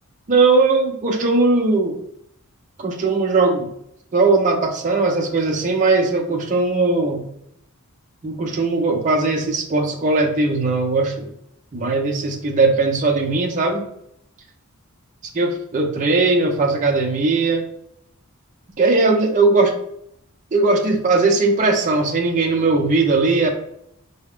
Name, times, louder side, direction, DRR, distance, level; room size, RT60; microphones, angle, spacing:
voice 1, 0.3-2.0 2.8-3.7 4.1-7.3 8.2-11.3 11.7-13.8 15.3-17.7 18.8-19.7 20.5-23.5, right 3 dB, 35° right, 1 dB, 0.4 m, -19 dB
4.6 x 2.1 x 3.6 m, 0.74 s
head